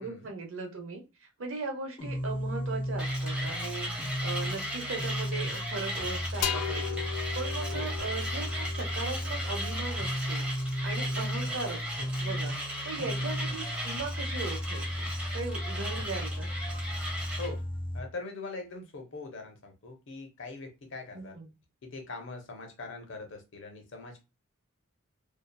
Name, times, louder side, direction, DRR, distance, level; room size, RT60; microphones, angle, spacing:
voice 1, 0.0-7.0 7.3-10.5 10.8-12.5 12.8-16.5 21.1-21.5, right 3 dB, 65° right, 3 dB, 0.7 m, -38 dB
sound 1, 2.0-18.0, equal, 25° left, 0.5 m, -35 dB
Mechanisms, 3.0-17.5, equal, 5° right, 0.8 m, -37 dB
sound 2, 6.4-10.1, left 10 dB, 80° left, 0.3 m, -37 dB
voice 2, 11.1-11.4 13.2-13.3 17.4-17.6 17.9-21.4 21.8-24.2, left 3 dB, 60° left, 4 dB, 0.7 m, -42 dB
2.7 x 2.3 x 2.3 m, 0.27 s
head